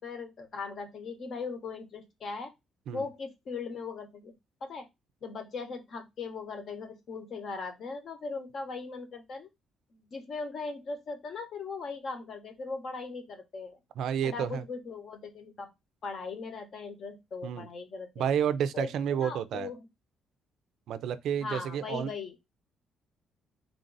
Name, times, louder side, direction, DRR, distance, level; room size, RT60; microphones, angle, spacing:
voice 1, 0.0-2.5 2.9-4.3 4.6-4.9 5.2-9.5 9.9-13.8 14.2-15.7 16.0-18.3 18.7-19.9 21.4-22.4, left 4 dB, 45° left, 0.9 m, -39 dB
voice 2, 14.0-14.6 17.4-17.7 18.2-19.7 20.9-22.1, right 8 dB, 70° right, 0.4 m, -30 dB
3.6 x 2.5 x 3.9 m
cardioid pair, 150°, 0 cm